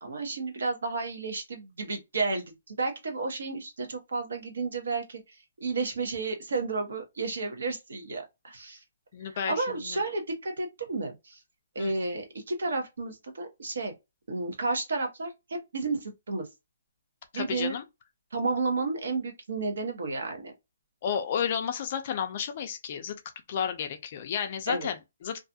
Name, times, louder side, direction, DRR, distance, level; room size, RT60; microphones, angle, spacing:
voice 1, 0.0-5.2 5.6-8.8 9.5-11.4 11.7-13.9 14.3-15.3 15.7-16.4 17.3-17.7 18.3-20.5 24.7-24.9, right 3 dB, 65° right, 0.9 m, -32 dB
voice 2, 9.1-10.0 11.8-11.9 17.3-17.8 21.0-23.2 23.5-25.4, left 8 dB, 30° left, 0.3 m, -32 dB
2.4 x 2.3 x 2.6 m
hypercardioid pair, 180°, 0 cm